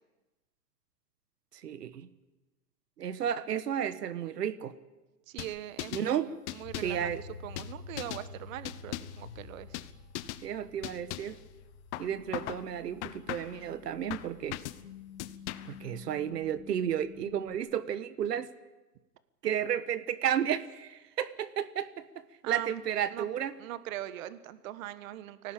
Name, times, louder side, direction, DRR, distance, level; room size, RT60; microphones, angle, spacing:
voice 1, 1.6-2.1 3.0-4.7 5.9-6.3 6.8-7.2 10.4-11.4 12.0-14.6 15.6-18.5 19.4-23.5, right 9 dB, 80° right, 13 dB, 1.6 m, -32 dB
voice 2, 5.3-7.1 7.4-9.7 22.4-22.7 23.1-23.3 23.6-25.5, right 13 dB, 55° right, 13 dB, 1.6 m, -41 dB
sound 1, 5.4-6.1 6.5-7.0 7.6-8.3 8.6-9.2 9.7-9.9 10.2-10.5 10.8-11.4 11.9-12.6 13.0-13.6 14.1-14.8 15.2-15.8, left 16 dB, 45° left, 1.2 m, -39 dB
sound 2, 6.6-17.5, left 5 dB, 80° left, 3.1 m, -49 dB
25.0 x 18.0 x 8.8 m, 1.1 s
hypercardioid pair, 135°, 47 cm